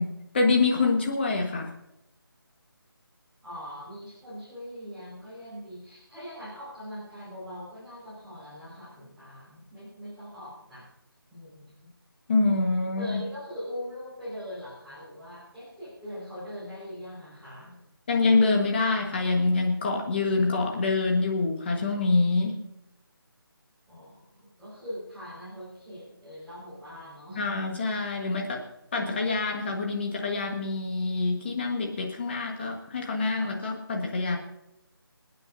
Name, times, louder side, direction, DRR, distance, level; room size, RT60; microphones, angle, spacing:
voice 1, 0.0-1.7 12.3-13.2 18.1-22.6 27.4-28.6 28.9-34.4, left 3 dB, 25° left, 1 dB, 1.5 m, -26 dB
voice 2, 3.4-10.9 11.3-11.9 13.0-17.8 23.9-27.4, equal, ahead, -14 dB, 4.9 m, -41 dB
27.0 x 9.5 x 2.7 m, 0.88 s
figure-of-eight pair, 170°, 12 cm